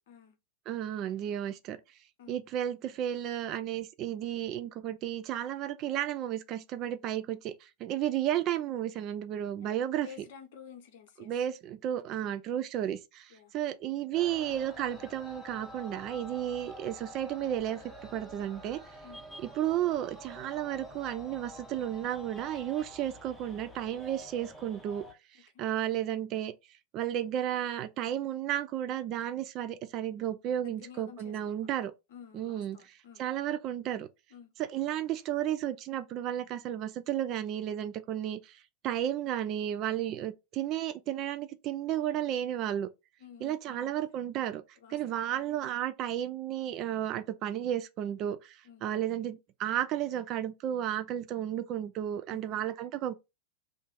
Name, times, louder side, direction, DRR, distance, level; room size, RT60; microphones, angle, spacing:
voice 1, 0.7-1.8 2.3-10.1 11.2-17.8 18.1-18.8 19.4-25.1 25.6-26.5 26.9-31.9 32.3-34.1 34.6-42.9 43.4-44.6 44.9-53.1, right 11 dB, 35° right, 0.3 m, -33 dB
voice 2, 9.6-11.3 13.3-13.5 19.0-19.2 25.3-25.6 30.6-31.8 32.1-33.2 34.3-34.5 43.2-43.9 44.8-45.2 48.6-48.8 52.3-52.6, left 8 dB, 55° left, 0.7 m, -52 dB
sound 1, 14.1-25.1, equal, 5° left, 0.8 m, -48 dB
2.5 x 2.5 x 3.7 m
figure-of-eight pair, 90°, 0 cm